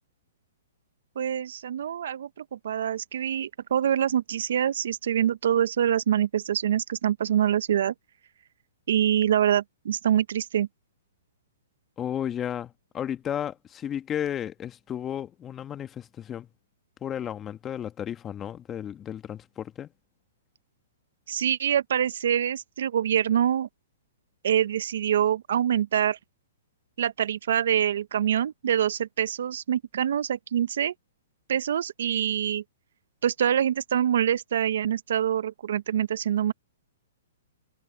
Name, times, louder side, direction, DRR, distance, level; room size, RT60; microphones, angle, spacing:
voice 1, 1.2-7.9 8.9-10.7 21.3-23.7 24.4-26.2 27.0-30.9 31.5-32.6 33.2-36.5, right 9 dB, 65° right, 0.9 m, -25 dB
voice 2, 12.0-16.5 17.0-19.9, left 9 dB, 20° left, 1.7 m, -33 dB
hypercardioid pair, 130°, 0 cm